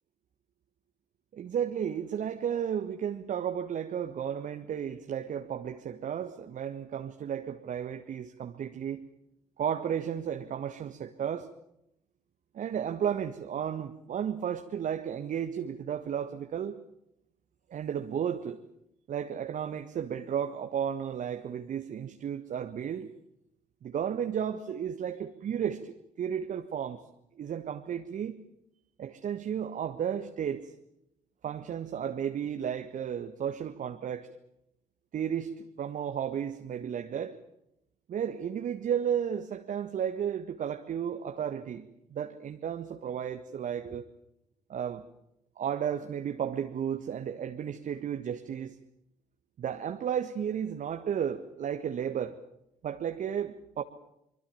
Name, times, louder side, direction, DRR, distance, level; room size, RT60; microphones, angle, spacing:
voice 1, 1.3-9.0 9.6-11.5 12.5-16.8 17.7-18.6 19.1-23.1 23.8-27.0 27.4-28.4 29.0-30.7 31.4-34.3 35.1-37.4 38.1-44.0 44.7-45.0 45.6-48.8 49.6-52.4 52.8-53.8, right 8 dB, 50° right, 7 dB, 1.6 m, -33 dB
25.0 x 24.5 x 7.1 m, 0.80 s
figure-of-eight pair, 45°, 17 cm